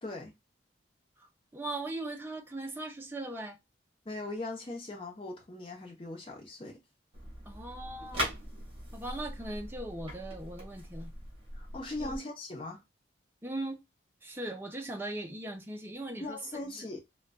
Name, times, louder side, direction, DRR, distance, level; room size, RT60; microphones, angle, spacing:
voice 1, 0.0-0.3 4.1-6.8 11.6-12.8 16.2-17.0, left 2 dB, 30° left, 0.7 m, -40 dB
voice 2, 1.5-3.6 7.5-8.3 8.9-11.1 12.0-12.2 13.4-13.8 14.2-16.9, right 2 dB, 10° right, 0.5 m, -39 dB
sound 1, 7.1-12.2, equal, 30° right, 1.3 m, -40 dB
3.8 x 2.2 x 2.2 m
head